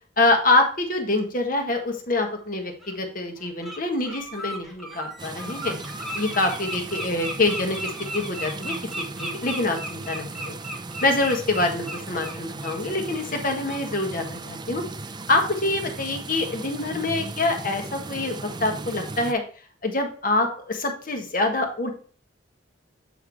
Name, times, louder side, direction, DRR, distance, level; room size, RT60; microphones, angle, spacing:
voice 1, 0.2-5.7 6.1-8.7 9.1-10.5 11.0-14.8 15.3-19.4 19.8-21.9, left 2 dB, 45° left, 4 dB, 1.4 m, -25 dB
Bird, 2.0-2.1 2.8-2.9 3.4-3.8 4.0-12.8 13.1-13.3 13.7-13.8, equal, ahead, 1.1 m, -35 dB
sound 1, 5.2-19.3, right 3 dB, 20° right, 0.4 m, -37 dB
8.1 x 3.6 x 4.7 m, 0.41 s
head